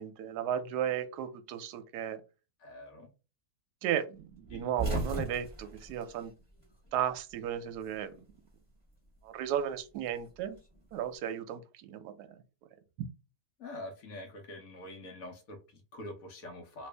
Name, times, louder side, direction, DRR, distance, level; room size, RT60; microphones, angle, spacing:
voice 1, 0.0-2.2 3.8-6.3 6.9-8.2 9.2-10.6 10.9-12.4 13.0-13.1, right 9 dB, 75° right, 8 dB, 1.1 m, -35 dB
voice 2, 2.6-3.1 4.5-4.7 13.6-16.9, left 1 dB, 60° left, 3 dB, 1.2 m, -45 dB
sound 1, 4.5-7.0 7.3-8.4 9.5-11.0, right 2 dB, 15° left, 1.3 m, -37 dB
3.0 x 2.5 x 3.3 m, 0.31 s
omnidirectional pair, 1.8 m